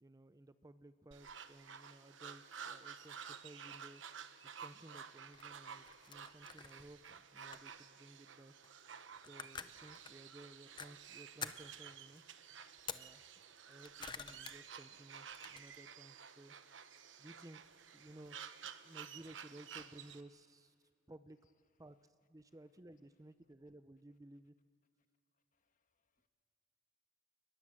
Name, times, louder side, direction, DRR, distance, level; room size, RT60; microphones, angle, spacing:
voice 1, 0.0-4.0 4.6-8.5 9.2-12.2 12.9-13.2 13.7-16.5 17.2-18.4 18.8-20.7 21.1-21.4 21.8-24.5, right 1 dB, 20° right, 0.6 m, -57 dB
sound 1, 1.1-20.2, right 7 dB, 80° right, 1.0 m, -52 dB
sound 2, 5.3-7.1 7.5-7.8 8.6-8.8 9.1-10.1 10.8-10.9 11.4-11.7 12.8-13.0 13.6-14.5 14.9-15.6, left 6 dB, 25° left, 0.7 m, -48 dB
voice 2, 25.5-26.3, left 5 dB, 45° left, 1.4 m, -88 dB
29.5 x 20.5 x 7.5 m
head